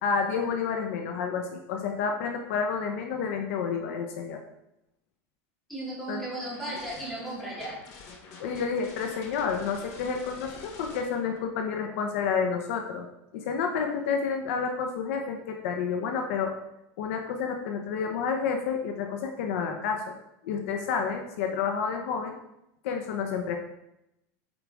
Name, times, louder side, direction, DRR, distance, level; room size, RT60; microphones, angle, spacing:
voice 1, 0.0-4.4 6.1-6.2 8.4-13.1 13.3-16.5 17.0-20.0 20.4-22.3 22.8-23.6, left 6 dB, 65° left, 3 dB, 0.9 m, -30 dB
voice 2, 5.7-7.8, right 1 dB, ahead, -7 dB, 2.5 m, -35 dB
sound 1, 6.4-11.4, left 4 dB, 40° left, 1.1 m, -47 dB
7.9 x 4.8 x 3.6 m, 0.84 s
supercardioid pair, 170°, 8 cm